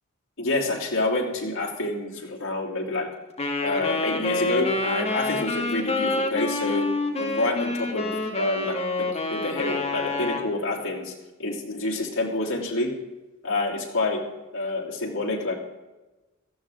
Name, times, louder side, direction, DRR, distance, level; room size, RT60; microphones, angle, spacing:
voice 1, 0.4-3.1 3.6-6.9 7.1-11.1 11.4-12.9 13.4-14.2 14.5-15.6, left 2 dB, 75° left, -3 dB, 3.5 m, -28 dB
Wind instrument woodwind instrument, 3.4-10.5, left 2 dB, 30° left, 2.3 m, -27 dB
18.0 x 14.0 x 3.7 m, 1.1 s
head